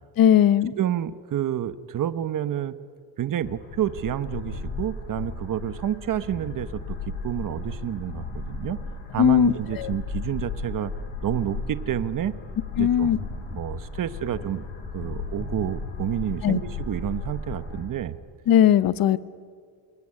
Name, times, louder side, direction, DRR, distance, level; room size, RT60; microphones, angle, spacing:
voice 1, 0.2-0.7 9.2-9.9 12.8-13.2 16.4-16.6 18.5-19.2, left 10 dB, 45° left, 16 dB, 1.0 m, -18 dB
voice 2, 0.8-2.7 3.2-8.8 9.1-10.9 11.2-12.3 12.8-13.1 13.5-14.6 14.9-18.2, right 10 dB, 45° right, 13 dB, 1.2 m, -29 dB
sound 1, 3.4-17.9, left 4 dB, 75° left, 7.5 m, -35 dB
27.0 x 22.0 x 9.9 m, 2.1 s
cardioid pair, 145°, 47 cm